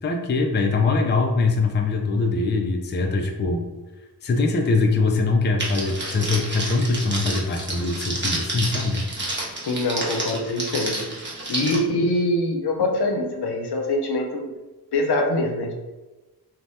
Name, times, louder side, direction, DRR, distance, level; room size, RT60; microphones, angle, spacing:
voice 1, 0.0-3.7 4.2-9.0, left 3 dB, 30° left, 2 dB, 0.3 m, -22 dB
Crackle, 5.6-11.8, right 2 dB, 30° right, 0.8 m, -30 dB
voice 2, 9.7-11.1 11.5-14.5 14.9-15.7, left 2 dB, 80° left, 3 dB, 0.6 m, -24 dB
2.7 x 2.1 x 3.3 m, 1.1 s
wide cardioid pair, 95°, 39 cm